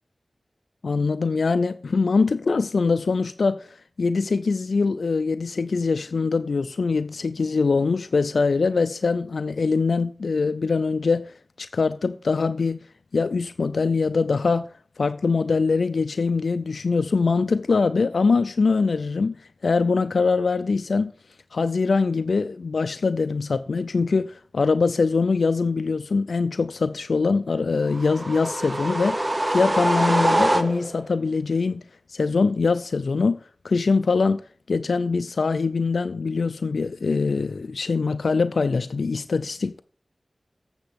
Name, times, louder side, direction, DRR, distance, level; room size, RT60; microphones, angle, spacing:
voice 1, 0.8-12.8 13.1-14.7 15.0-19.4 19.6-21.1 21.5-31.8 32.1-33.4 33.6-34.4 34.7-39.8, left 4 dB, 85° left, 0.4 m, -23 dB
sound 1, 27.9-31.1, right 1 dB, 30° right, 0.9 m, -24 dB
8.0 x 7.5 x 5.1 m
cardioid pair, 45°, 0 cm